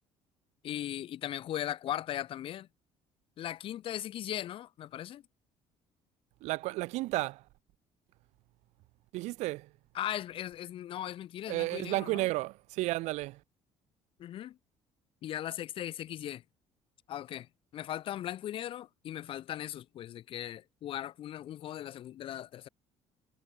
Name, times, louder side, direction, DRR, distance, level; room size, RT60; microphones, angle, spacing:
voice 1, 0.6-2.7 3.4-5.2 9.9-12.3 14.2-14.6 15.2-16.4 17.1-22.7, left 12 dB, 50° left, 0.9 m, -38 dB
voice 2, 6.4-7.4 9.1-9.7 11.5-13.4, right 20 dB, 80° right, 0.7 m, -32 dB
cardioid pair, 135°, 12 cm